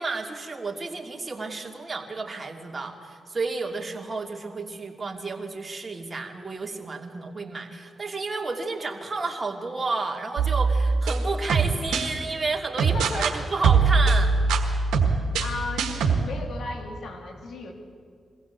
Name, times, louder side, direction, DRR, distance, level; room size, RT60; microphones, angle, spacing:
voice 1, 0.0-14.3, right 3 dB, 35° right, 2 dB, 2.7 m, -31 dB
sound 1, 10.4-12.1 12.8-13.3 13.6-16.2, right 4 dB, 90° right, 1.6 m, -22 dB
voice 2, 12.9-13.4 15.4-17.7, left 3 dB, 75° left, 3 dB, 2.6 m, -35 dB
22.5 x 15.5 x 8.3 m, 2.1 s
supercardioid pair, 50°, 0 cm